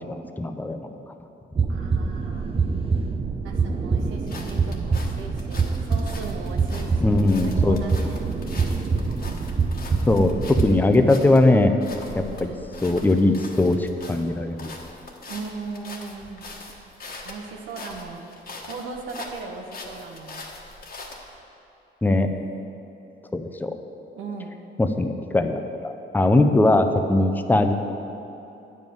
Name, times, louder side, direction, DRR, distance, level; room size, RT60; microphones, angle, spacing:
voice 1, 0.1-0.9 7.0-8.1 10.1-11.8 12.1-12.5 12.8-14.7 22.0-22.3 23.3-23.7 24.8-27.7, left 2 dB, 10° left, 6 dB, 0.6 m, -20 dB
sound 1, 1.6-10.7, right 4 dB, 30° right, 0.6 m, -25 dB
voice 2, 1.7-2.6 3.4-8.2 12.3-12.5 15.3-16.5 17.2-20.4 24.1-24.6, right 4 dB, 85° right, 2 dB, 1.0 m, -38 dB
sound 2, 4.0-21.4, left 2 dB, 50° left, 1.4 m, -42 dB
8.9 x 5.4 x 7.8 m, 3.0 s
cardioid pair, 90°, 20 cm